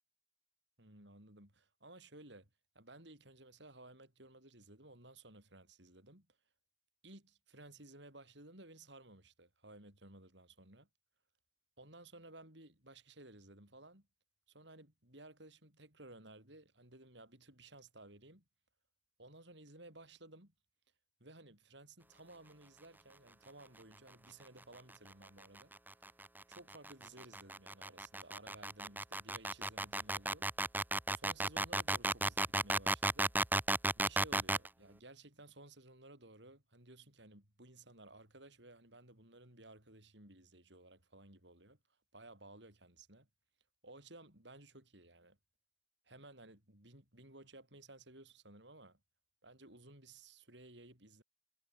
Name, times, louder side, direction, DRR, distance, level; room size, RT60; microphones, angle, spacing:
voice 1, 0.8-2.5 2.7-6.3 7.0-10.9 11.8-14.1 14.5-18.4 19.2-20.5 21.2-25.7 26.5-30.7 31.1-33.3 34.0-41.8 42.1-43.3 43.8-45.4 46.0-49.0 49.4-51.2, right 2 dB, 60° right, 7.6 m, -57 dB
sound 1, 25.4-34.7, right 2 dB, 10° right, 1.6 m, -34 dB
head